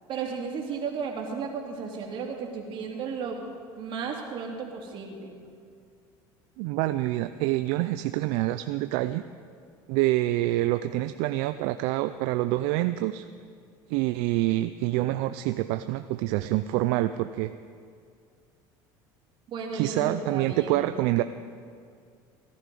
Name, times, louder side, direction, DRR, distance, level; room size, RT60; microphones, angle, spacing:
voice 1, 0.1-3.4 3.8-5.4 19.5-20.8, right 5 dB, 50° right, 0 dB, 2.8 m, -34 dB
voice 2, 6.6-9.2 9.9-13.3 13.9-17.5 19.7-21.2, right 16 dB, 75° right, 11 dB, 0.4 m, -26 dB
17.0 x 11.5 x 5.4 m, 2.3 s
supercardioid pair, 100°, 11 cm